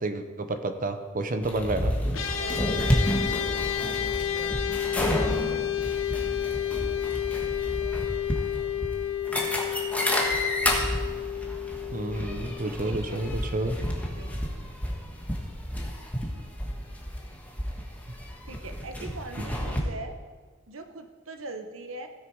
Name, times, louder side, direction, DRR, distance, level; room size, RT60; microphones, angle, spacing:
voice 1, 0.0-1.9 11.9-13.8 19.4-19.5, right 2 dB, 40° right, 8 dB, 0.8 m, -30 dB
sound 1, 1.4-19.8, equal, 5° left, 1.3 m, -31 dB
sound 2, 2.1-13.6, left 10 dB, 75° left, 0.9 m, -31 dB
voice 2, 2.4-3.1 3.8-4.6 5.2-5.9 12.8-13.2 14.2-14.5 18.5-20.2 20.7-22.1, right 2 dB, 70° right, 7 dB, 1.0 m, -42 dB
16.0 x 6.6 x 4.7 m, 1.5 s
head